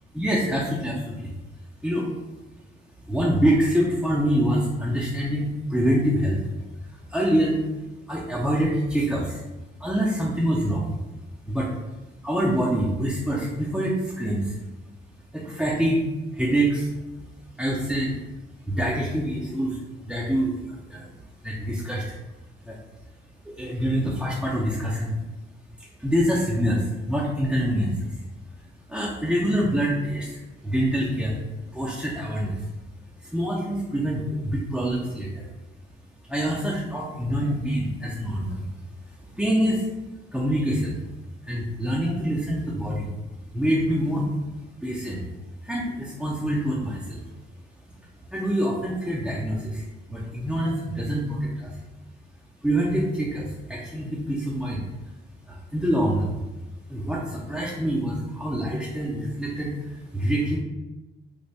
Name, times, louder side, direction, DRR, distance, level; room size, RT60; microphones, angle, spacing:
voice 1, 0.1-1.3 1.8-2.1 3.0-6.4 6.8-7.6 8.1-9.4 9.8-11.0 11.5-11.8 12.2-14.6 15.3-16.0 16.3-16.9 17.6-18.2 18.7-19.8 20.0-22.2 22.6-22.8 23.4-25.2 25.8-28.2 28.6-31.4 31.7-32.7 33.2-35.5 36.2-38.7 39.0-39.9 40.3-41.0 41.4-43.1 43.5-44.3 44.8-45.3 45.6-47.2 48.3-51.8 52.6-55.1 55.4-56.4 56.9-60.6, equal, 5° right, -5 dB, 0.6 m, -26 dB
3.3 x 2.2 x 4.1 m, 1.1 s
cardioid pair, 90°, 20 cm